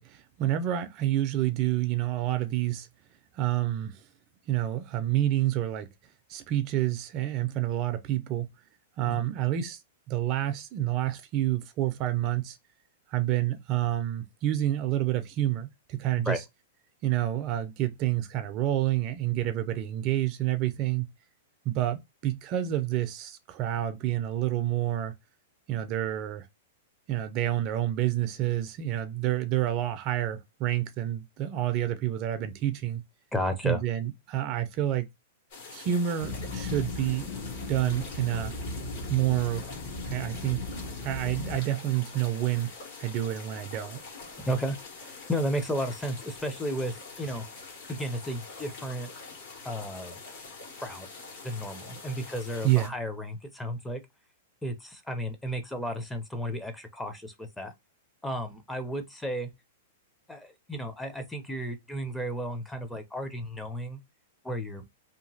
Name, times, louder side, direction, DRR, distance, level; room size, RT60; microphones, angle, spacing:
voice 1, 0.0-2.9 3.3-4.0 4.5-5.9 6.3-8.5 9.0-9.8 10.1-12.6 13.1-16.4 17.0-21.1 21.7-25.1 25.7-26.5 27.1-33.0 33.6-35.1 35.7-37.3 37.7-38.5 39.1-39.6 40.0-40.6 41.0-42.7 43.0-44.0 52.6-52.9, right 13 dB, 40° right, 0.4 m, -28 dB
voice 2, 33.3-33.8 44.4-47.4 47.9-49.1 49.6-50.1 50.8-51.1 51.4-54.0 54.6-57.7 58.2-59.5 60.3-64.0 64.4-64.8, equal, 5° left, 0.5 m, -33 dB
sound 1, 35.5-52.9, left 4 dB, 65° left, 1.5 m, -45 dB
sound 2, 36.2-41.6, left 3 dB, 40° left, 0.7 m, -37 dB
2.8 x 2.4 x 2.7 m
hypercardioid pair, 135°, 0 cm